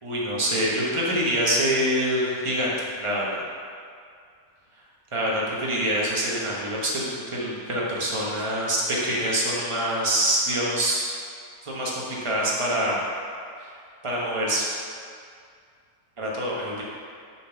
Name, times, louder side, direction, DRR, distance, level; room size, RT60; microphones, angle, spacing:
voice 1, 0.0-3.4 5.1-11.1 11.6-13.0 13.6-13.7 14.0-14.7 16.2-16.8, equal, 20° right, -5 dB, 1.3 m, -25 dB
6.9 x 4.6 x 5.9 m, 2.2 s
omnidirectional pair, 1.5 m